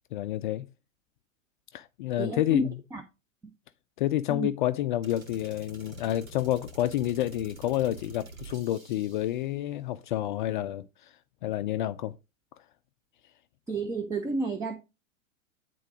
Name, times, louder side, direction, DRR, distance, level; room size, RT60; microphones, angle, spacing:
voice 1, 0.1-0.7 1.7-2.8 4.0-12.1, left 13 dB, 40° left, 0.5 m, -29 dB
voice 2, 2.2-2.6 2.9-3.0 4.3-4.5 13.7-14.8, right 3 dB, 10° right, 0.6 m, -31 dB
sound 1, 5.0-9.5, right 2 dB, 80° right, 2.5 m, -47 dB
10.0 x 3.8 x 4.9 m
figure-of-eight pair, 110°, 40 cm